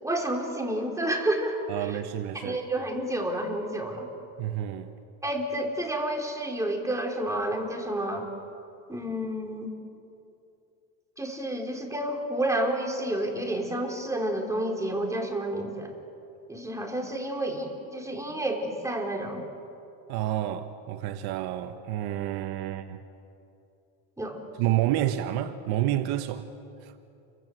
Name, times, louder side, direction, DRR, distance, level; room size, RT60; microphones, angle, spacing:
voice 1, 0.0-2.0 2.3-4.1 5.2-8.3 8.9-9.7 11.2-15.9 16.5-19.4 24.2-24.4, right 1 dB, 5° right, 4.2 m, -30 dB
voice 2, 1.7-2.6 4.4-4.9 20.1-23.0 24.6-26.5 26.8-26.9, right 13 dB, 65° right, 1.3 m, -29 dB
29.0 x 24.0 x 8.0 m
supercardioid pair, 120°, 41 cm